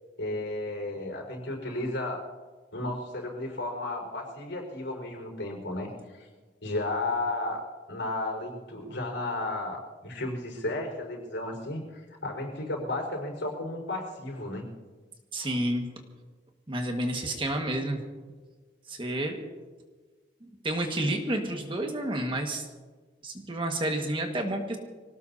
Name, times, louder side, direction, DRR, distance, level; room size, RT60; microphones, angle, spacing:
voice 1, 0.2-2.2 2.7-5.9 6.1-6.3 6.6-7.6 7.9-14.7 15.4-15.5, left 2 dB, 85° left, 1 dB, 4.9 m, -33 dB
voice 2, 15.3-15.8 16.7-18.0 18.9-19.4 20.6-22.6 23.2-24.8, right 1 dB, 25° right, 3 dB, 1.7 m, -30 dB
25.5 x 18.0 x 2.8 m, 1.4 s
head